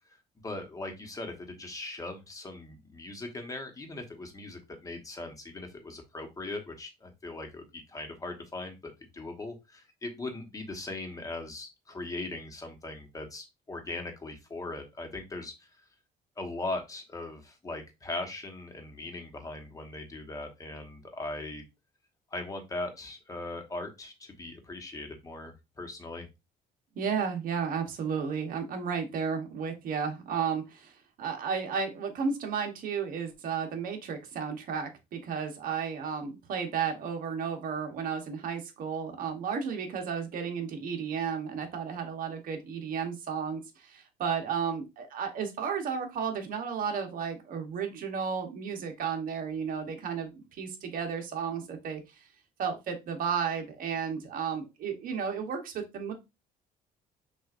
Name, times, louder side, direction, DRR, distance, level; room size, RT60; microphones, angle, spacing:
voice 1, 0.4-15.8 16.4-21.6 22.3-26.3, left 2 dB, 20° left, 4 dB, 1.1 m, -39 dB
voice 2, 26.9-52.2 52.6-56.1, right 6 dB, 55° right, 3 dB, 1.0 m, -33 dB
6.0 x 2.5 x 2.5 m, 0.25 s
cardioid pair, 110°, 17 cm